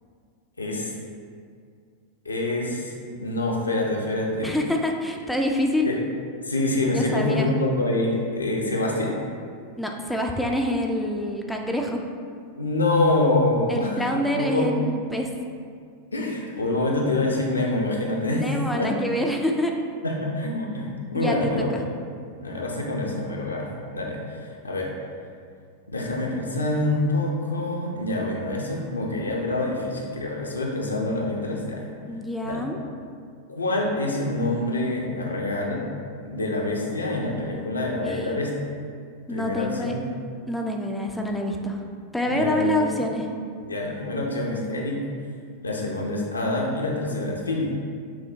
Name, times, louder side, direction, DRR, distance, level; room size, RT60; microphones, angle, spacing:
voice 1, 0.6-0.9 2.2-4.6 5.8-6.0 6.4-9.2 12.6-14.0 14.3-14.8 16.1-18.4 18.7-18.9 20.0-21.8 22.4-24.9 25.9-31.9 32.4-32.6 33.5-35.8 36.2-38.5 39.3-40.0 42.3-42.9 43.6-45.0 45.6-47.7, left 2 dB, 80° left, -1 dB, 0.5 m, -26 dB
voice 2, 4.4-5.9 6.9-7.5 9.8-12.0 13.7-15.3 18.3-19.7 21.1-21.8 32.1-32.8 38.1-38.3 39.3-39.9 40.5-41.8 42.1-43.3, left 1 dB, ahead, 1 dB, 0.3 m, -26 dB
6.0 x 2.1 x 2.7 m, 2.2 s
figure-of-eight pair, 90°, 0 cm